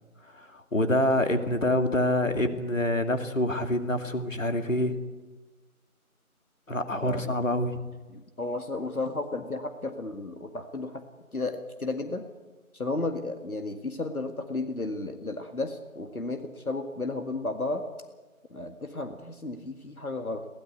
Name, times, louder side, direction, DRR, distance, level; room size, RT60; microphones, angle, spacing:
voice 1, 0.3-4.9 6.7-7.8, left 1 dB, 60° left, 7 dB, 2.6 m, -26 dB
voice 2, 7.0-7.3 8.1-11.0 11.3-12.3 12.7-17.9 18.5-20.5, left 2 dB, 75° left, 6 dB, 2.1 m, -33 dB
23.0 x 17.0 x 8.3 m, 1.3 s
figure-of-eight pair, 175°, 43 cm